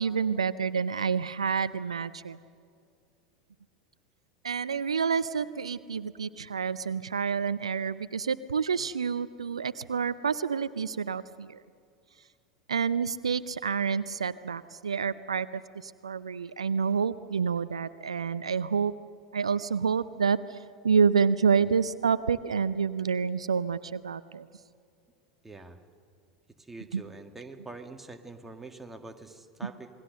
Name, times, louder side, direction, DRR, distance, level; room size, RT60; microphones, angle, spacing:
voice 1, 0.0-2.4 4.4-11.6 12.7-15.5 15.8-18.9 19.3-20.6 20.8-24.5 26.9-27.0 29.6-29.7, right 6 dB, 75° right, 16 dB, 0.5 m, -28 dB
voice 2, 25.4-25.8 26.7-29.9, right 3 dB, 10° right, 5 dB, 1.9 m, -45 dB
27.5 x 20.5 x 6.6 m, 2.4 s
figure-of-eight pair, 85°, 3 cm